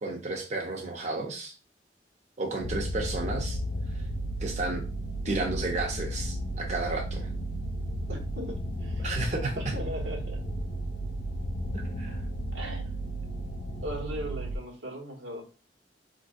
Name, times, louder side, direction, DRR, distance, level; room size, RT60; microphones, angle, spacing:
voice 1, 0.0-1.5 2.4-3.6 4.4-4.8 5.2-7.3 9.0-9.6 12.0-12.2, right 2 dB, 40° right, 0 dB, 0.6 m, -32 dB
sound 1, 2.6-14.6, right 1 dB, 85° left, 0.6 m, -34 dB
voice 2, 8.1-9.2 9.6-10.4 12.5-12.9 13.8-15.4, equal, 85° right, 0 dB, 1.2 m, -38 dB
4.2 x 2.5 x 2.4 m, 0.34 s
head